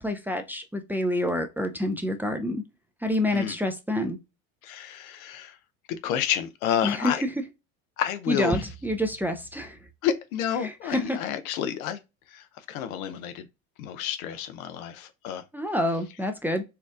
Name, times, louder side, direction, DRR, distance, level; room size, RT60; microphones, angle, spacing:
voice 1, 0.0-2.6 3.0-4.2 6.8-7.1 8.3-9.8 10.6-11.2 15.5-16.6, left 1 dB, 5° right, 0.4 m, -27 dB
voice 2, 4.6-5.6 6.0-7.2 8.0-8.6 10.0-12.0 12.3-13.5 13.8-15.4, left 9 dB, 85° left, 0.7 m, -30 dB
4.5 x 2.4 x 2.3 m
hypercardioid pair, 80°, 41 cm